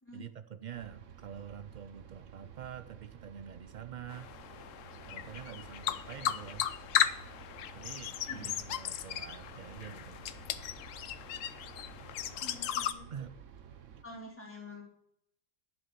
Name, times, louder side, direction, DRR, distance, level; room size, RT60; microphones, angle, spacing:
voice 1, 0.1-4.3 5.1-6.7 7.7-10.2 13.1-13.4, right 8 dB, 90° right, 11 dB, 0.4 m, -46 dB
sound 1, 0.7-14.0, right 9 dB, 65° right, 1.2 m, -53 dB
sound 2, 4.1-12.9, left 10 dB, 70° left, 1.0 m, -36 dB
voice 2, 12.4-13.1 14.0-14.8, left 2 dB, 10° left, -2 dB, 2.9 m, -47 dB
11.0 x 6.2 x 6.7 m, 0.76 s
omnidirectional pair, 1.4 m